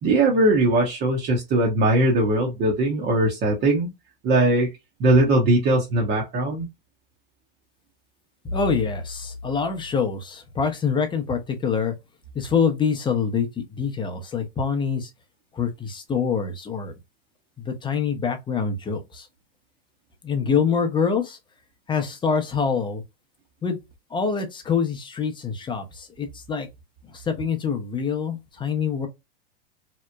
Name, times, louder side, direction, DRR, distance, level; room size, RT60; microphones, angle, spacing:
voice 1, 0.0-3.9 4.2-4.7 5.0-6.7, right 1 dB, 35° right, 0.8 m, -20 dB
voice 2, 8.4-11.9 12.3-15.1 15.5-16.9 17.7-19.3 20.2-21.4 21.9-23.0 23.6-23.8 24.1-26.7 27.1-29.1, left 6 dB, 15° left, 0.6 m, -25 dB
2.9 x 2.0 x 2.2 m
hypercardioid pair, 110°, 30 cm